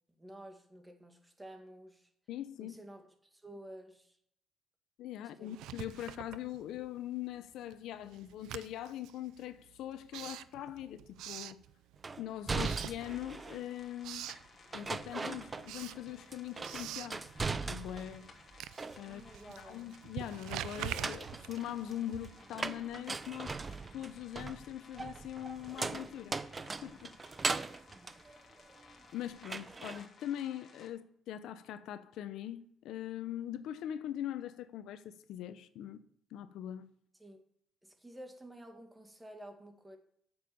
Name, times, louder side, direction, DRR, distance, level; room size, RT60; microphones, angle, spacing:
voice 1, 0.1-2.1 2.6-4.2 5.2-5.6 6.2-6.3 19.0-20.0 27.9-28.4 37.2-37.4 37.8-40.0, right 1 dB, 15° right, 2.0 m, -52 dB
voice 2, 2.3-2.8 5.0-11.6 12.2-14.3 14.7-17.2 17.7-18.3 19.0-19.2 19.6-23.6 23.9-26.4 26.8-27.2 29.1-36.0 36.3-36.8, left 12 dB, 85° left, 0.7 m, -42 dB
Writing, 5.5-7.1 7.4-12.2 12.5-13.5 13.8-14.5 14.9-22.6, right 13 dB, 90° right, 0.4 m, -46 dB
sound 1, 12.0-13.7 14.7-16.0 16.3-18.2 18.5-19.4 20.7-29.1 29.4-30.1, right 4 dB, 30° right, 0.7 m, -39 dB
sound 2, 13.0-30.9, left 4 dB, 40° left, 2.7 m, -59 dB
8.9 x 7.1 x 7.0 m
cardioid pair, 90°, 0 cm